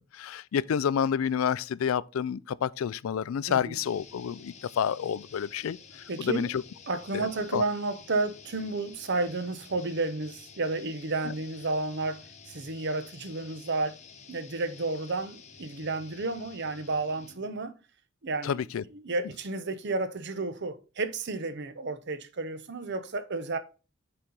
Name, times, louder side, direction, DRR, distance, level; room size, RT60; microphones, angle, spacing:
voice 1, 0.0-5.8 6.2-6.6 7.1-7.3 7.5-7.6 18.4-18.8, left 8 dB, 80° left, 0.4 m, -29 dB
voice 2, 3.5-3.8 6.1-6.5 6.9-14.0 14.3-17.7 18.2-18.6 18.9-23.6, right 3 dB, 55° right, 0.9 m, -32 dB
sound 1, 3.8-17.5, left 6 dB, 35° left, 0.9 m, -51 dB
7.9 x 4.3 x 3.8 m
head